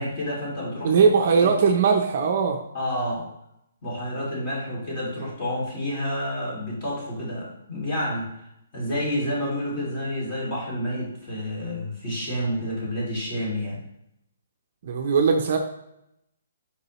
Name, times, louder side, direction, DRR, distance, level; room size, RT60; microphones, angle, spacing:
voice 1, 0.0-1.1 1.4-1.5 2.7-3.3 3.8-8.3 8.7-13.8, equal, 25° left, -5 dB, 2.6 m, -29 dB
voice 2, 0.8-2.6 14.8-15.6, right 5 dB, 40° right, 3 dB, 0.7 m, -20 dB
7.8 x 5.4 x 3.1 m, 0.81 s
hypercardioid pair, 170°, 0 cm